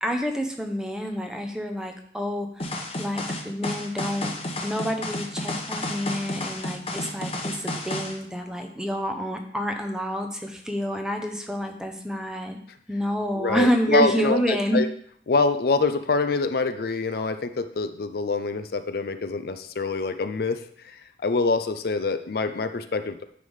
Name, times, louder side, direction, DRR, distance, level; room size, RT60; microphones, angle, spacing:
voice 1, 0.0-2.7 3.0-12.6 12.9-14.9, equal, 5° right, 4 dB, 0.7 m, -28 dB
sound 1, 2.6-8.2, left 1 dB, 35° left, 0.9 m, -31 dB
voice 2, 13.3-14.9 15.3-20.6 21.2-23.2, left 3 dB, 60° left, 10 dB, 0.4 m, -25 dB
9.6 x 3.4 x 5.4 m, 0.63 s
head